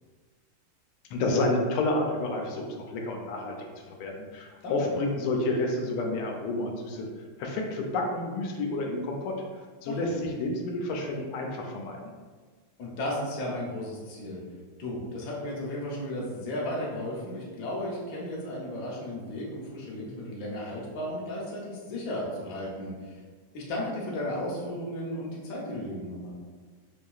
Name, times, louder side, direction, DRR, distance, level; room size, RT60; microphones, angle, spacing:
voice 1, 1.1-3.5 3.9-7.1 7.4-9.4 9.8-12.0, left 2 dB, 85° left, 1 dB, 1.5 m, -29 dB
voice 2, 12.8-14.4 14.8-23.1 23.5-26.3, left 1 dB, 55° left, -4 dB, 1.0 m, -34 dB
4.9 x 2.7 x 2.3 m, 1.5 s
omnidirectional pair, 2.3 m